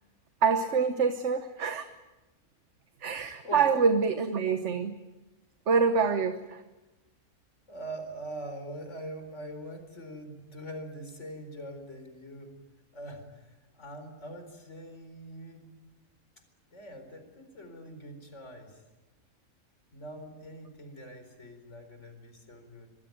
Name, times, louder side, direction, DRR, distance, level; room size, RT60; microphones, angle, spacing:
voice 1, 0.4-1.8 3.0-4.9 5.7-6.6, right 5 dB, 55° right, 8 dB, 1.5 m, -26 dB
voice 2, 3.4-3.8 7.7-12.5 12.9-15.7 16.7-18.8 19.9-22.9, right 1 dB, 55° left, 7 dB, 4.7 m, -43 dB
26.0 x 22.0 x 9.4 m, 1.1 s
omnidirectional pair, 1.5 m